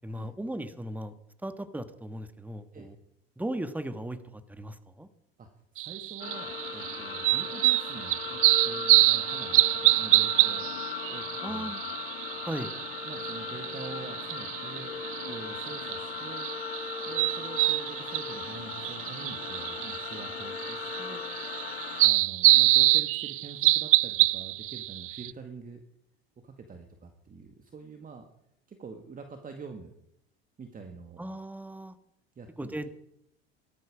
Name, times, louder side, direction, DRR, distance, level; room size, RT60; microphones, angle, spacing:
voice 1, 0.0-1.1 1.4-2.9 3.4-5.1 11.4-11.8 12.4-12.7 31.2-32.0 32.6-32.9, right 1 dB, 5° right, 11 dB, 1.4 m, -37 dB
voice 2, 5.4-10.6 11.1-11.7 13.0-15.0 15.2-16.5 17.1-21.2 22.0-25.8 26.4-28.2 28.7-29.9 30.6-31.2 32.4-32.9, right 5 dB, 25° right, 5 dB, 2.0 m, -45 dB
sound 1, 5.8-25.3, right 18 dB, 45° right, 0.5 m, -26 dB
sound 2, 6.2-22.1, left 7 dB, 90° left, 0.9 m, -38 dB
18.5 x 13.0 x 5.0 m, 0.74 s
hypercardioid pair, 80°, 31 cm